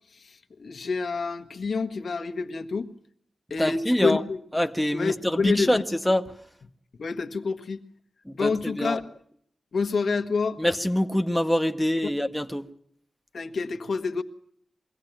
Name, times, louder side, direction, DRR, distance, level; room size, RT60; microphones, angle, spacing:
voice 1, 0.1-2.9 3.5-4.4 4.9-5.8 7.0-7.8 8.3-9.0 9.7-10.6 13.3-14.2, left 4 dB, 60° left, 1.3 m, -28 dB
voice 2, 3.6-4.2 4.5-6.3 8.2-9.0 10.6-12.6, left 1 dB, 5° left, 0.8 m, -25 dB
23.0 x 17.0 x 8.9 m
wide cardioid pair, 160°, 0 cm